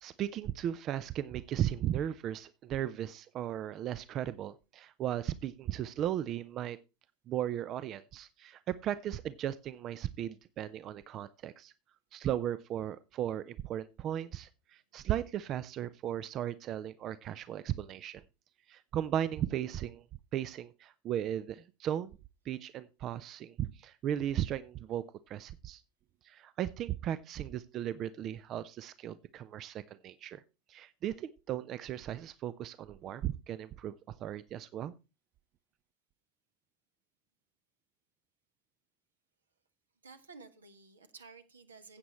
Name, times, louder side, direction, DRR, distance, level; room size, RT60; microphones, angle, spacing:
voice 1, 0.0-6.8 7.3-11.7 12.1-18.2 18.7-20.0 20.3-22.2 22.5-25.8 26.2-30.4 30.7-34.9, right 11 dB, 40° right, 16 dB, 0.4 m, -36 dB
voice 2, 40.0-42.0, right 4 dB, 80° right, 9 dB, 1.2 m, -53 dB
15.5 x 8.1 x 3.1 m, 0.28 s
figure-of-eight pair, 75°, 0 cm